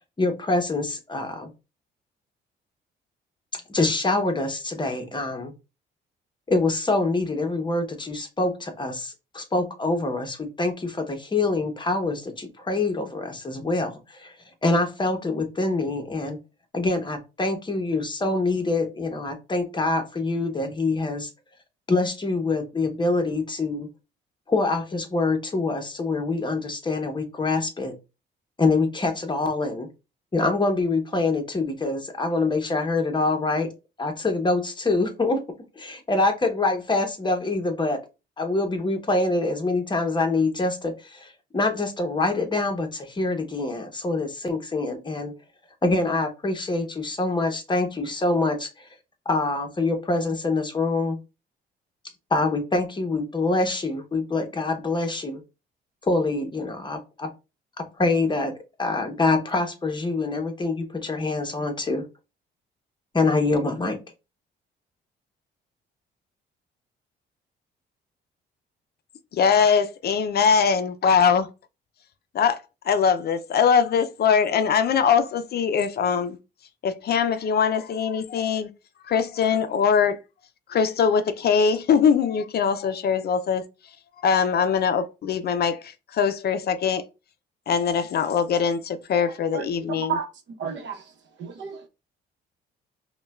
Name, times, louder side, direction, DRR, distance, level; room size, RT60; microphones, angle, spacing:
voice 1, 0.2-1.5 3.5-5.5 6.5-14.3 14.6-16.4 16.7-21.3 21.9-23.9 24.5-27.9 28.6-29.9 30.3-33.7 34.0-35.4 35.8-38.0 38.4-45.3 45.8-48.9 49.3-51.2 52.3-55.4 56.0-57.3 57.8-62.0 63.1-64.0, left 3 dB, 25° left, 0.9 m, -25 dB
voice 2, 69.4-71.5 72.3-72.6 72.9-76.4 76.8-78.7 79.1-80.2 80.7-83.6 84.2-87.1 87.7-90.2, left 6 dB, 55° left, 0.4 m, -22 dB
voice 3, 89.5-91.0 91.4-91.9, right 7 dB, 65° right, 0.8 m, -32 dB
5.2 x 2.2 x 2.3 m
cardioid pair, 90°, 20 cm